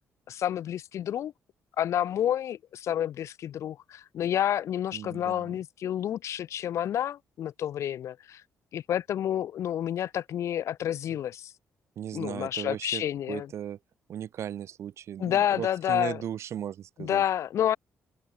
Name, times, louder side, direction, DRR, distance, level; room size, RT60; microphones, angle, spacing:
voice 1, 0.3-1.3 1.8-8.4 8.7-11.5 12.1-13.5 15.2-16.2 17.0-17.8, left 10 dB, 65° left, 3.4 m, -29 dB
voice 2, 4.9-5.5 12.0-13.8 14.1-17.2, right 10 dB, 60° right, 6.1 m, -37 dB
open air
cardioid pair, 155°, 5 cm